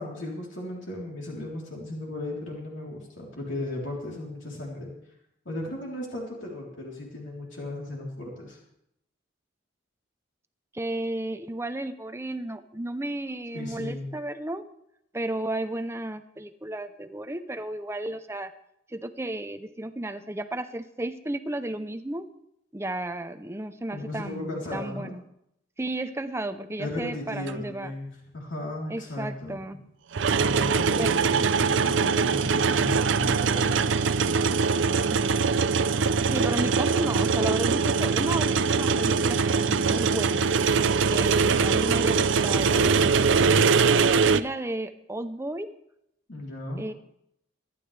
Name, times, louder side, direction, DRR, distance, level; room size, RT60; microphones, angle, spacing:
voice 1, 0.0-4.9 5.5-8.6 13.5-14.1 23.9-25.1 26.8-29.6 30.3-34.6 46.3-46.9, left 1 dB, 70° left, -3 dB, 3.5 m, -36 dB
voice 2, 10.7-14.6 15.1-18.5 18.9-22.3 22.7-25.2 25.8-27.9 28.9-29.8 31.0-31.2 36.3-40.5 41.1-43.6 44.3-45.7 46.8-46.9, right 1 dB, 15° right, 10 dB, 0.6 m, -33 dB
sound 1, 27.5-27.6 30.1-44.4, right 5 dB, 65° right, 0.5 m, -22 dB
24.0 x 11.5 x 3.3 m, 0.77 s
head